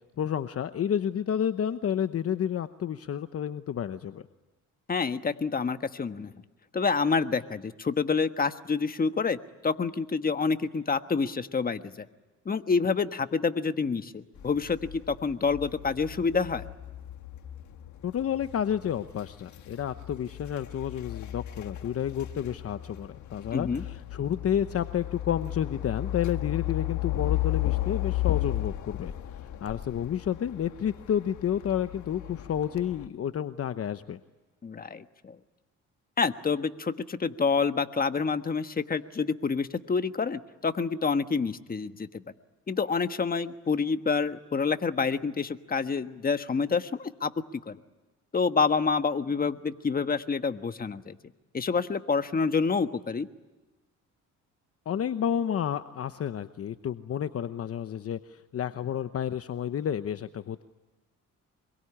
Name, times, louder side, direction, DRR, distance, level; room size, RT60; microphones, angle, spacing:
voice 1, 0.2-4.2 18.0-29.1 29.6-34.2 54.9-60.6, left 9 dB, 50° left, 10 dB, 1.0 m, -30 dB
voice 2, 4.9-6.3 6.7-9.4 9.6-12.0 12.4-16.6 23.5-23.8 34.6-35.3 36.2-42.2 42.7-47.3 47.7-47.8 48.3-51.2 51.5-53.3, left 5 dB, 30° left, 9 dB, 1.4 m, -28 dB
sound 1, 14.4-33.1, left 15 dB, 65° left, 1.6 m, -35 dB
25.5 x 22.5 x 10.0 m, 1.1 s
cardioid pair, 95°, 31 cm